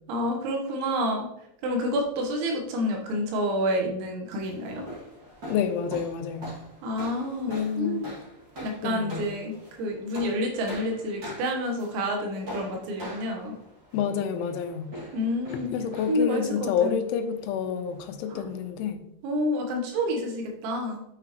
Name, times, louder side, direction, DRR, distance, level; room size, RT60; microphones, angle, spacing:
voice 1, 0.1-1.3 1.6-4.8 6.8-8.1 8.6-13.5 15.1-15.7 16.1-17.0 18.3-18.4 19.2-21.0, equal, 75° right, 1 dB, 3.5 m, -29 dB
sound 1, 4.4-18.7, equal, 40° right, 1.8 m, -43 dB
voice 2, 5.5-6.6 7.5-8.0 8.8-9.3 13.9-14.9 15.7-19.1, left 7 dB, 90° left, 7 dB, 3.1 m, -28 dB
8.8 x 6.0 x 3.0 m, 0.79 s
omnidirectional pair, 5.5 m